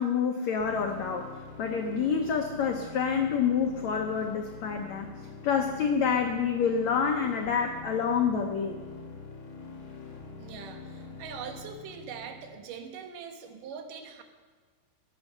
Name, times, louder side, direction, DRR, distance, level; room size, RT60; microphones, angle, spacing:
voice 1, 0.0-5.1 5.4-8.8, left 6 dB, 85° left, 3 dB, 1.5 m, -28 dB
sound 1, 0.6-12.6, left 4 dB, 40° left, 2.2 m, -44 dB
voice 2, 10.4-14.2, right 6 dB, 65° right, 5 dB, 2.5 m, -42 dB
17.5 x 8.3 x 6.6 m, 1.5 s
omnidirectional pair, 4.5 m